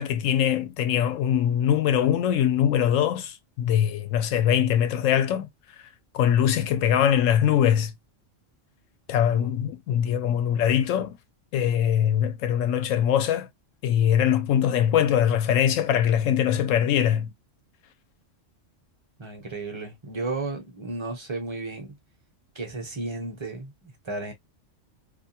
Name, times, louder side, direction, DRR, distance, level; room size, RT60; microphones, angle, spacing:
voice 1, 0.0-5.5 6.1-7.9 9.1-11.2 11.5-13.5 13.8-17.3, left 9 dB, 85° left, 0.9 m, -22 dB
voice 2, 19.2-22.0 22.5-24.3, right 2 dB, 25° right, 0.7 m, -34 dB
2.5 x 2.2 x 2.7 m
omnidirectional pair, 1.3 m